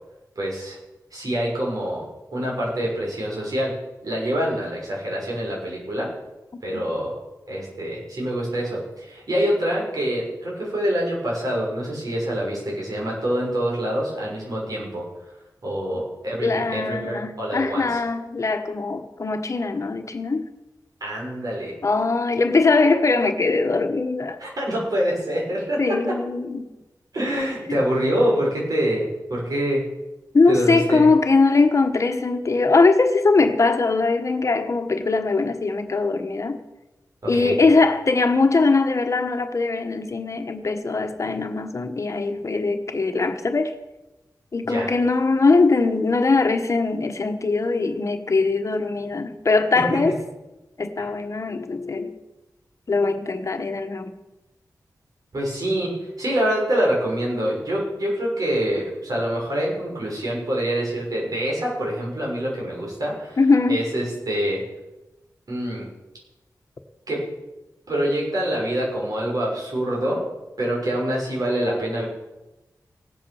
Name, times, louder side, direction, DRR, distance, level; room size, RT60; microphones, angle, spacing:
voice 1, 0.4-0.8 1.1-2.0 2.3-3.8 4.0-6.1 6.6-7.1 7.5-15.0 15.6-18.0 21.0-21.8 24.4-26.1 27.1-29.8 30.5-31.0 37.2-37.6 44.6-44.9 49.8-49.9 51.0-51.1 55.3-63.4 63.7-64.6 65.5-65.9 67.1-67.3 67.9-70.3 70.6-72.1, equal, 65° right, -3 dB, 6.5 m, -25 dB
voice 2, 16.4-20.5 21.8-24.4 25.8-26.7 27.7-27.8 30.3-36.6 37.3-43.7 44.5-50.2 50.8-52.1 52.9-54.1 63.4-63.8, left 3 dB, 50° left, 7 dB, 1.3 m, -21 dB
17.5 x 8.7 x 7.1 m, 1.0 s
wide cardioid pair, 110°, 7 cm